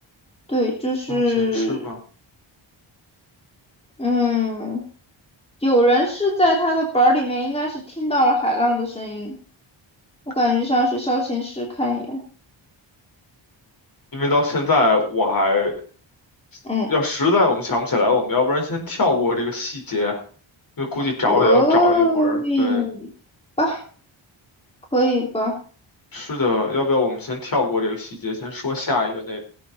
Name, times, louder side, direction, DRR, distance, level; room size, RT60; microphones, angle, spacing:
voice 1, 0.5-1.8 4.0-4.8 5.6-9.3 10.3-12.2 16.6-16.9 21.3-23.1 23.6-23.8 24.9-25.6, equal, 10° left, -1 dB, 3.1 m, -21 dB
voice 2, 1.1-2.0 14.1-15.8 16.9-20.2 20.8-22.8 26.1-29.4, left 2 dB, 45° left, 2 dB, 4.7 m, -22 dB
18.0 x 8.6 x 4.3 m, 0.40 s
wide cardioid pair, 150°, 48 cm